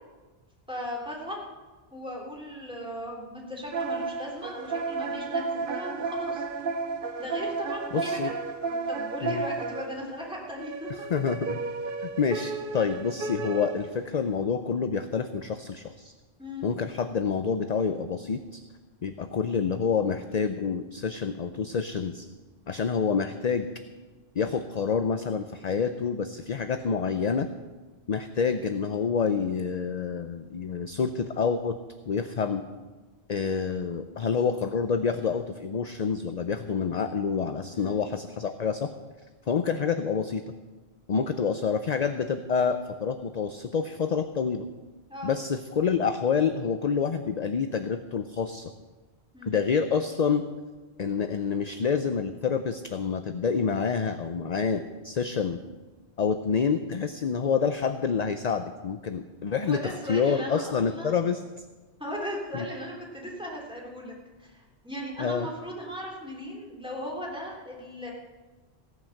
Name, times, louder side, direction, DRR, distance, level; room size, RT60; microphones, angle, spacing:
voice 1, 0.7-1.4 1.9-6.4 7.2-8.3 8.7-10.9 16.4-16.7 37.7-38.0 45.1-45.4 49.3-49.6 59.6-61.2 62.0-64.1 64.4-68.1, equal, 5° right, -3 dB, 3.3 m, -37 dB
sound 1, 3.7-10.0 10.6-14.1, right 4 dB, 55° right, 1.0 m, -32 dB
voice 2, 7.9-8.3 9.2-9.4 11.1-11.6 12.0-16.1 16.6-18.6 19.0-22.3 22.7-23.7 24.4-27.5 28.1-31.8 32.1-32.6 33.3-38.9 39.5-40.4 41.1-44.7 45.2-48.7 49.5-50.4 51.0-55.6 56.2-61.4 62.5-62.7 65.2-65.5, left 6 dB, 45° left, 8 dB, 0.7 m, -27 dB
16.5 x 9.3 x 6.5 m, 1.3 s
omnidirectional pair, 1.1 m